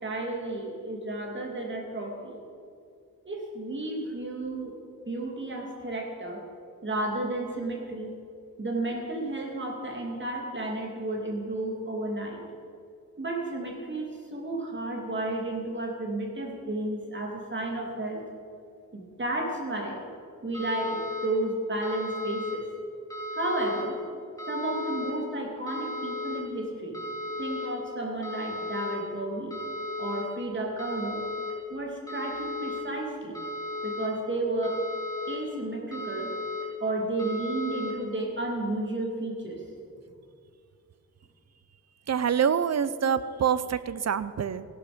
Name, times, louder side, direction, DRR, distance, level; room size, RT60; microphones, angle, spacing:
voice 1, 0.0-2.4 3.2-4.7 5.1-6.4 6.8-8.1 8.6-12.4 13.2-18.2 18.9-20.0 20.4-22.6 23.3-24.0 24.5-26.9 27.4-29.5 30.0-31.3 31.7-33.4 33.8-34.8 35.3-36.3 36.8-39.6, right 2 dB, 35° right, 0 dB, 2.8 m, -32 dB
sound 1, 20.5-21.3 21.8-22.6 23.1-23.8 24.4-25.1 25.7-26.4 26.9-27.7 28.2-29.0 29.5-30.2 30.8-31.5 32.1-32.8 33.3-34.1 34.6-35.4 35.9-36.6 37.2-37.9, left 2 dB, 10° left, 3.1 m, -35 dB
voice 2, 42.1-44.7, right 7 dB, 50° right, 15 dB, 0.6 m, -26 dB
15.5 x 12.0 x 5.1 m, 2.4 s
wide cardioid pair, 120°, 33 cm